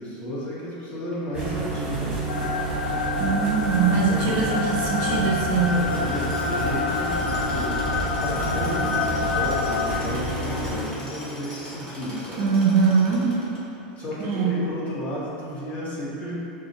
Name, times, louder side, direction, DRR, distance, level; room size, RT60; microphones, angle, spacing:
voice 1, 0.0-2.3 4.1-4.4 5.6-7.8 8.2-12.6 14.0-16.4, equal, 35° left, -8 dB, 1.4 m, -33 dB
sound 1, 1.3-10.9, right 2 dB, 15° right, 1.2 m, -29 dB
sound 2, 2.3-9.9, left 4 dB, 80° left, 0.4 m, -28 dB
voice 2, 3.2-5.8 12.4-13.4 14.2-14.6, right 5 dB, 55° right, -2 dB, 0.5 m, -22 dB
Tools, 5.6-13.9, equal, 15° left, 1.2 m, -40 dB
6.4 x 2.4 x 3.0 m, 2.8 s
hypercardioid pair, 110°, 5 cm